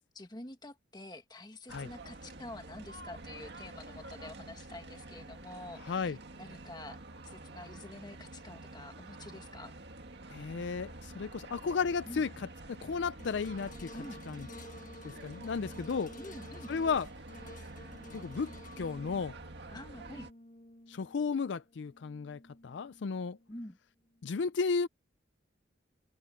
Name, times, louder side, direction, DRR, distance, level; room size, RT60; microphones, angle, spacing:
voice 1, 0.1-9.7 12.0-12.2 13.9-14.2 16.2-16.7 19.7-20.3 23.5-23.8, left 1 dB, 20° left, 1.7 m, -48 dB
sound 1, 1.7-20.3, right 2 dB, 60° right, 2.0 m, -48 dB
voice 2, 5.8-6.2 10.3-13.9 14.3-14.5 15.0-16.1 16.7-17.1 18.1-19.3 20.9-23.4 24.2-24.9, left 5 dB, 65° left, 0.4 m, -34 dB
sound 2, 13.2-23.6 24.1-24.2, left 2 dB, 45° left, 1.7 m, -52 dB
head